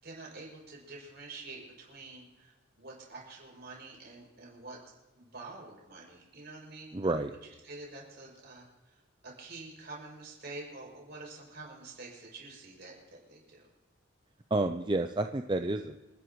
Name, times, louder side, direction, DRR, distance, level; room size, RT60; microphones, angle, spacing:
voice 1, 0.0-4.8 5.2-7.1 7.6-13.6, right 3 dB, 50° right, -3 dB, 6.6 m, -47 dB
voice 2, 6.9-7.3 14.5-16.0, right 2 dB, 25° right, 6 dB, 0.5 m, -30 dB
28.5 x 11.5 x 3.1 m, 1.2 s
head